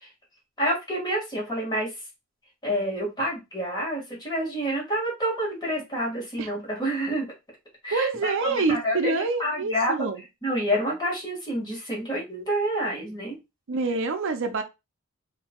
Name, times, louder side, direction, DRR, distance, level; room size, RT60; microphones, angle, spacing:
voice 1, 0.6-1.9 2.6-7.3 7.8-9.1 9.4-10.1 10.4-13.4, equal, 20° left, -4 dB, 1.7 m, -28 dB
voice 2, 7.9-10.2 13.7-14.6, right 3 dB, 60° right, 8 dB, 0.5 m, -26 dB
4.4 x 2.6 x 2.2 m, 0.24 s
head